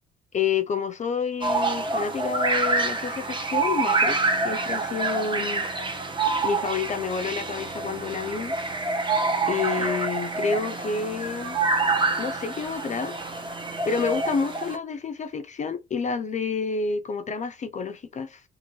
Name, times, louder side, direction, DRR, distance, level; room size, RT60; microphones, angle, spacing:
voice 1, 0.3-5.7 6.4-8.5 9.5-11.6 12.2-13.2 13.9-18.4, left 5 dB, 35° left, 0.5 m, -29 dB
sound 1, 1.4-14.8, right 3 dB, 25° right, 0.9 m, -27 dB
2.6 x 2.6 x 2.9 m
cardioid pair, 90°, 20 cm